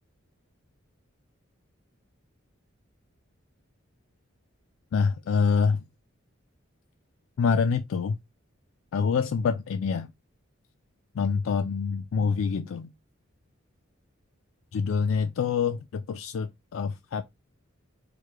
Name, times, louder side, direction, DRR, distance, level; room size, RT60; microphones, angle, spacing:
voice 1, 4.9-5.8 7.4-8.2 8.9-10.1 11.1-12.9 14.7-17.2, left 5 dB, 75° left, 0.4 m, -26 dB
4.9 x 2.2 x 4.4 m
head